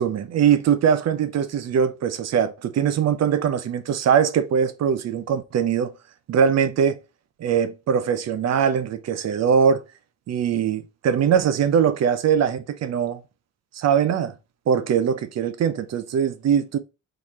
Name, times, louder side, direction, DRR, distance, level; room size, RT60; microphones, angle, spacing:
voice 1, 0.0-5.9 6.3-7.0 7.4-9.8 10.3-13.2 13.7-14.3 14.7-16.8, right 7 dB, 60° right, 0.7 m, -21 dB
3.9 x 3.2 x 4.2 m
cardioid pair, 90°, 30 cm